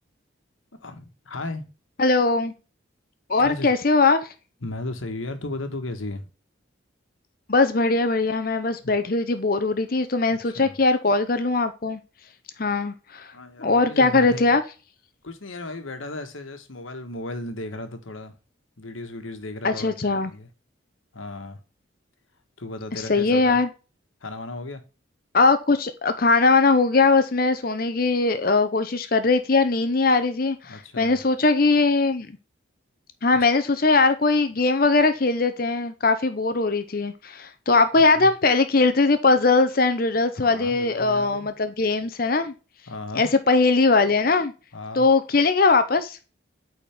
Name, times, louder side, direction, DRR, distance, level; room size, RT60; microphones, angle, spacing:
voice 1, 0.8-1.7 3.4-3.7 4.6-6.3 8.8-8.9 10.5-10.8 13.3-14.4 15.2-18.4 18.8-20.5 21.1-21.6 22.6-23.6 24.2-24.8 30.7-31.2 38.0-38.3 40.4-41.5 42.9-43.3 44.7-45.1, left 2 dB, 90° left, 1.4 m, -35 dB
voice 2, 2.0-2.5 3.3-4.2 7.5-12.0 12.6-13.3 13.6-14.6 19.6-20.3 22.9-23.7 25.3-32.3 33.2-42.5 43.1-44.5 44.9-46.2, left 3 dB, 45° left, 0.7 m, -20 dB
8.9 x 4.3 x 3.5 m
head